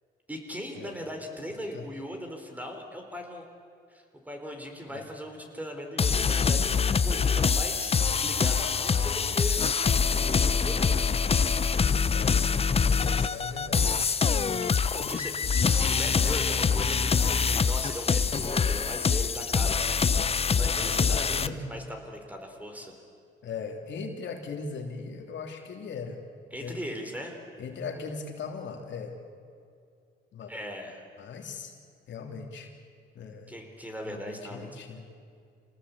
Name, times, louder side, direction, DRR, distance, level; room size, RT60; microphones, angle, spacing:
voice 1, 0.3-3.4 3.9-11.1 14.5-22.9 26.5-27.4 30.5-31.0 33.5-34.7, equal, 10° right, 3 dB, 4.3 m, -39 dB
sound 1, 6.0-21.5, left 6 dB, 30° left, 0.7 m, -25 dB
voice 2, 12.8-14.0 14.3-14.6 14.9-15.2 20.8-21.6 23.4-26.2 26.6-26.8 27.6-29.2 30.3-30.5 31.2-31.7 32.1-32.7 33.1-33.5 34.0-35.1, left 5 dB, 65° left, 3 dB, 3.2 m, -39 dB
27.0 x 18.5 x 8.5 m, 2.3 s
cardioid pair, 90°, 20 cm